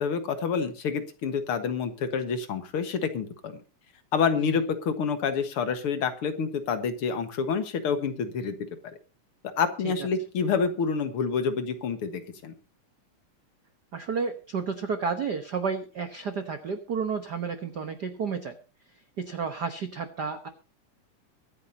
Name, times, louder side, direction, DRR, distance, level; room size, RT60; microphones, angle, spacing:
voice 1, 0.0-3.6 4.1-8.7 9.6-12.5, left 6 dB, 55° left, 8 dB, 2.0 m, -28 dB
voice 2, 13.9-18.5 19.2-20.5, right 5 dB, 75° right, 8 dB, 0.9 m, -31 dB
23.5 x 9.5 x 2.8 m, 0.34 s
omnidirectional pair, 3.6 m